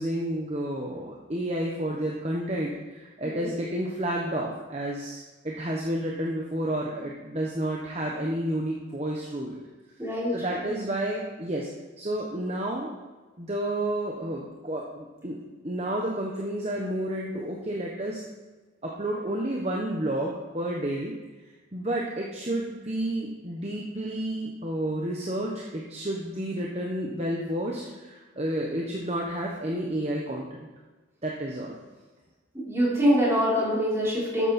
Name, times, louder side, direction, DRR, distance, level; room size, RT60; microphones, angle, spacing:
voice 1, 0.0-9.6 10.3-11.7 12.0-12.9 13.4-15.4 15.6-18.2 18.8-21.1 21.7-30.6 31.2-31.8, right 1 dB, 30° right, -2 dB, 1.2 m, -30 dB
voice 2, 10.0-10.3 32.6-34.5, equal, 15° right, -8 dB, 4.6 m, -24 dB
13.0 x 8.9 x 4.4 m, 1.2 s
head